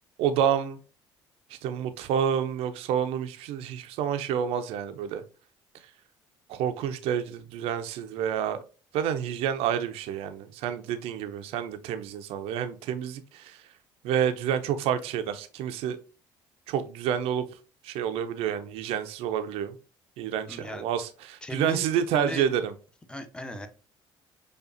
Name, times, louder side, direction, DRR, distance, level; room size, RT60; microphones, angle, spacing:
voice 1, 0.2-0.8 1.6-5.2 6.5-8.6 8.9-13.6 14.0-16.0 16.7-17.4 17.8-19.7 20.2-22.7, right 9 dB, 70° right, 0.5 m, -29 dB
voice 2, 20.5-20.9 21.4-22.5 23.1-23.7, left 1 dB, 10° left, 0.7 m, -37 dB
4.9 x 2.3 x 2.5 m
supercardioid pair, 70°, 10 cm